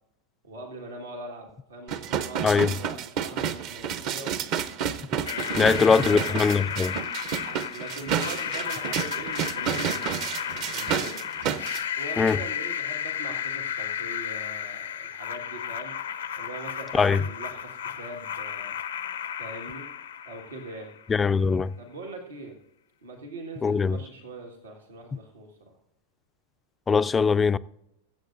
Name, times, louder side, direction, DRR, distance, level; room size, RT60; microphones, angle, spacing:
voice 1, 0.4-4.5 5.3-6.9 7.7-11.2 12.0-15.9 16.4-18.8 19.4-19.9 20.2-20.9 21.8-22.6 23.0-25.7, right 2 dB, 90° right, 1.7 m, -41 dB
sound 1, 1.9-11.8 12.3-12.4, right 8 dB, 50° right, 0.7 m, -30 dB
sound 2, 5.3-21.2, left 9 dB, 85° left, 0.8 m, -33 dB
voice 2, 5.6-7.0 12.2-12.4 16.9-17.2 21.1-21.7 23.6-24.0 26.9-27.6, left 5 dB, 20° left, 0.3 m, -21 dB
22.5 x 7.9 x 2.6 m
hypercardioid pair, 100°, 0 cm